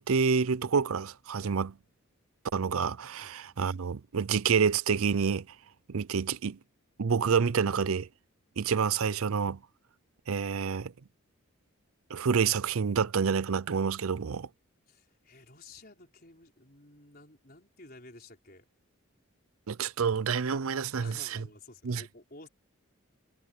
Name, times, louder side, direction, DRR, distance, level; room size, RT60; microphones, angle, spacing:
voice 1, 0.0-1.7 2.5-5.5 5.9-6.6 7.0-8.1 8.6-9.6 10.3-10.9 12.1-14.5 19.7-21.4 21.8-22.0, right 6 dB, 75° right, 0.5 m, -28 dB
voice 2, 14.9-18.7 21.0-22.5, left 2 dB, 40° left, 4.7 m, -53 dB
head